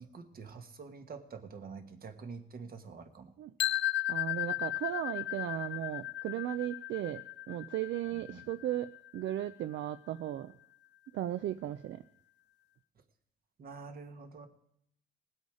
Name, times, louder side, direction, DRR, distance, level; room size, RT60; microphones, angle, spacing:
voice 1, 0.0-3.3 8.1-8.4 13.6-14.5, right 5 dB, 50° right, 7 dB, 1.5 m, -47 dB
sound 1, 3.6-9.5, left 15 dB, 65° left, 0.5 m, -36 dB
voice 2, 4.1-10.6 11.1-12.0, right 12 dB, 70° right, 12 dB, 0.5 m, -36 dB
19.0 x 8.0 x 4.9 m, 0.73 s
cardioid pair, 90°, 20 cm